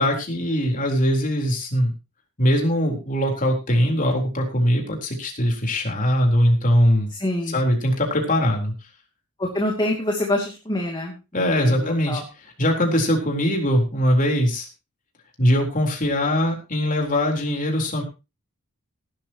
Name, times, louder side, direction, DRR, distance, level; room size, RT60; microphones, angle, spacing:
voice 1, 0.0-1.9 2.4-7.1 7.5-8.7 11.3-14.7 15.4-18.0, equal, 35° left, 2 dB, 3.9 m, -21 dB
voice 2, 7.2-7.6 9.4-12.2, left 1 dB, 20° left, 0 dB, 2.6 m, -26 dB
18.5 x 12.0 x 3.0 m, 0.28 s
head